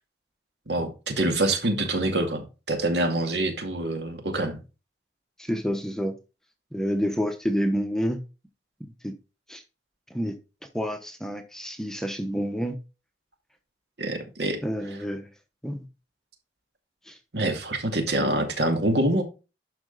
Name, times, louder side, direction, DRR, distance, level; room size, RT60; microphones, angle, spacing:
voice 1, 0.7-4.6 14.0-14.6 17.3-19.2, right 1 dB, 70° right, 2.2 m, -25 dB
voice 2, 5.4-6.1 6.7-8.2 9.0-9.2 9.5-9.6 10.1-10.4 10.7-12.8 14.6-15.3 15.6-15.9 17.1-17.2, equal, 5° left, 0.9 m, -28 dB
11.5 x 5.1 x 3.9 m
head